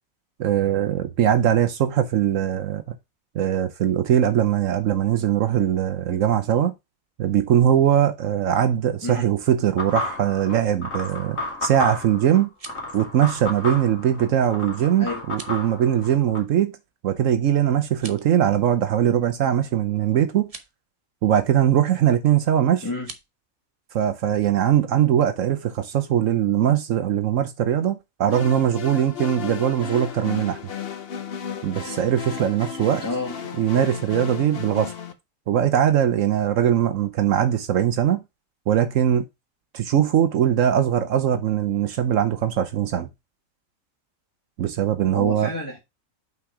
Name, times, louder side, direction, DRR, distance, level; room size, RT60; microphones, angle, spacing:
voice 1, 0.4-2.8 3.3-6.7 7.2-12.5 12.9-16.7 17.0-20.5 21.2-22.9 23.9-30.6 31.6-33.0 33.6-34.9 35.5-38.2 38.7-39.3 39.7-43.1 44.6-45.5, right 10 dB, 70° right, 1.1 m, -21 dB
sound 1, 9.8-16.4, left 2 dB, 70° left, 2.5 m, -32 dB
sound 2, 12.3-12.9 15.2-15.6 17.9-18.3 20.4-20.7 22.9-23.3, right 4 dB, 30° right, 0.8 m, -42 dB
sound 3, 28.3-35.1, left 7 dB, 50° left, 1.0 m, -34 dB
voice 2, 33.0-33.3 45.1-45.8, left 2 dB, 15° left, 1.3 m, -29 dB
5.8 x 4.7 x 4.8 m
omnidirectional pair, 1.4 m